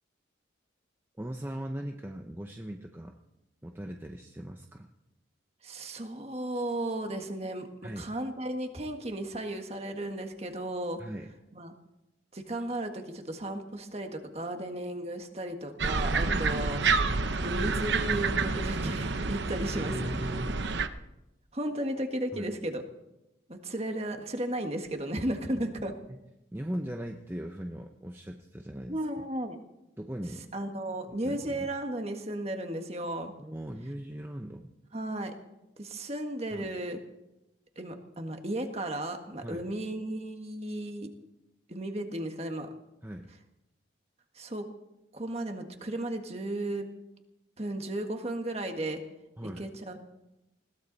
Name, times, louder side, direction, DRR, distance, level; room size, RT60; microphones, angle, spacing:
voice 1, 1.2-3.1 3.6-4.9 7.8-8.1 11.0-11.3 16.2-16.5 19.8-20.7 22.3-22.5 26.1-26.2 26.5-29.2 30.0-30.5 31.1-31.7 33.4-34.7 36.5-36.7 39.4-39.7 43.0-43.3 49.4-49.7, equal, 10° right, 3 dB, 0.7 m, -39 dB
voice 2, 5.6-7.7 8.0-11.0 11.5-11.7 12.3-16.8 17.4-20.2 21.5-22.8 23.5-25.9 28.9-29.6 30.5-33.3 34.9-35.3 35.8-37.0 37.7-41.1 41.7-42.7 44.3-44.7 45.1-46.9 47.6-49.0 49.4-50.0, right 1 dB, 30° right, 5 dB, 1.7 m, -34 dB
sound 1, 15.8-20.9, right 4 dB, 65° right, 0.9 m, -29 dB
20.5 x 17.0 x 4.1 m, 0.93 s
head